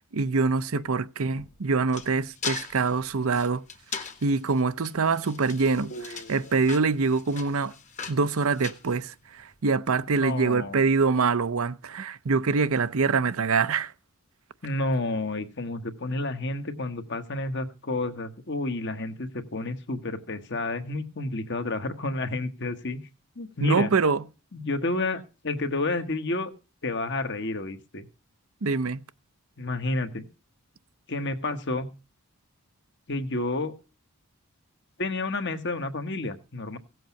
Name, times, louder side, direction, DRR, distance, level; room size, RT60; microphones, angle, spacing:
voice 1, 0.1-3.6 4.2-7.7 8.1-13.9 23.6-24.2 28.6-29.0, right 4 dB, 70° right, 0.7 m, -25 dB
sound 1, 1.3-9.6, left 6 dB, 35° left, 1.3 m, -40 dB
voice 2, 5.9-6.5 10.2-10.8 14.6-23.0 23.4-23.9 24.5-26.5 26.8-28.1 29.6-30.3 31.1-31.9 33.1-33.7 35.0-36.8, left 2 dB, 50° left, 1.4 m, -30 dB
16.5 x 7.9 x 5.8 m
head